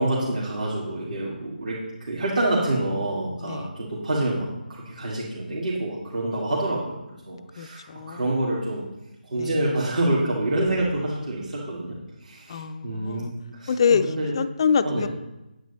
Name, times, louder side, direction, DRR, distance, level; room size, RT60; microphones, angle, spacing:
voice 1, 0.0-7.0 7.3-8.9 9.2-13.7 14.0-14.3 14.8-15.1, right 1 dB, 60° right, -6 dB, 2.3 m, -27 dB
voice 2, 7.6-8.2 9.4-9.6 12.5-13.3 13.7-14.0 14.3-15.1, left 6 dB, 30° left, 11 dB, 0.4 m, -25 dB
9.0 x 8.8 x 4.1 m, 0.96 s
figure-of-eight pair, 155°, 5 cm